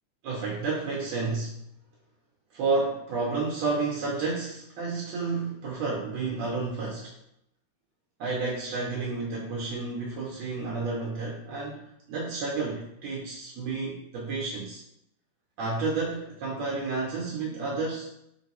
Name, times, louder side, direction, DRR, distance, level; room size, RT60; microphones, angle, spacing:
voice 1, 0.2-1.5 2.5-7.1 8.2-14.8 15.6-18.1, right 3 dB, 75° right, -3 dB, 1.7 m, -31 dB
4.5 x 3.0 x 2.9 m, 0.78 s
omnidirectional pair, 3.4 m